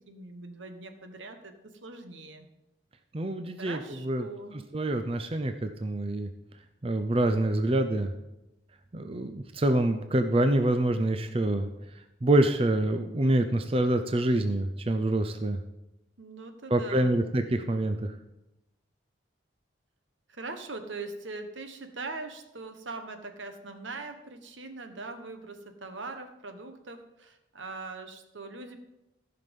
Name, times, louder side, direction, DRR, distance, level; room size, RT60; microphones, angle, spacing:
voice 1, 0.1-2.5 3.6-4.6 16.2-17.3 20.3-28.8, right 3 dB, 85° right, 7 dB, 1.2 m, -41 dB
voice 2, 3.1-4.3 4.7-6.3 6.8-8.1 8.9-11.7 12.2-15.6 16.7-18.1, right 1 dB, 30° right, 8 dB, 0.5 m, -26 dB
14.5 x 5.9 x 5.3 m, 0.94 s
head